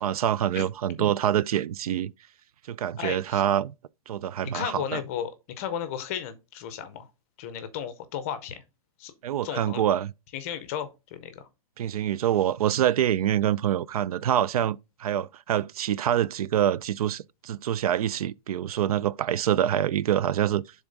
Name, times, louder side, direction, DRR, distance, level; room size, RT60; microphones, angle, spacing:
voice 1, 0.0-2.1 2.7-3.7 4.1-5.0 9.2-10.1 11.8-20.6, right 11 dB, 75° right, 0.4 m, -26 dB
voice 2, 3.0-3.4 4.4-5.3 5.6-7.1 7.4-8.6 9.0-9.1 9.4-9.8 10.3-11.5, left 9 dB, 25° left, 0.6 m, -34 dB
7.1 x 3.6 x 3.9 m
hypercardioid pair, 175°, 19 cm